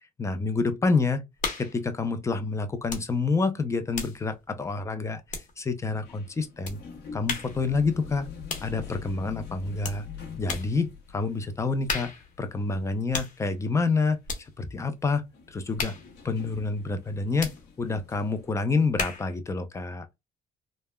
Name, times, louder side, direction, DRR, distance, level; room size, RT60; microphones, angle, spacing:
voice 1, 0.2-1.2 1.6-5.2 5.6-6.8 7.1-8.3 8.6-10.1 10.4-12.1 12.4-14.2 14.6-15.9 16.2-17.5 17.8-20.1, left 4 dB, 15° left, 0.5 m, -28 dB
sound 1, 1.4-1.8 2.9-3.1 3.4-5.8 6.6-6.8 7.3-7.6 8.5-8.8 9.8-10.0 10.5-10.8 11.9-12.3 13.1-13.4 14.2-14.5 15.8-16.1 17.4-17.6 19.0-19.3, left 4 dB, 50° left, 0.9 m, -34 dB
sound 2, 5.8-18.5, left 6 dB, 80° left, 0.8 m, -45 dB
3.3 x 2.0 x 2.2 m
cardioid pair, 110°, 17 cm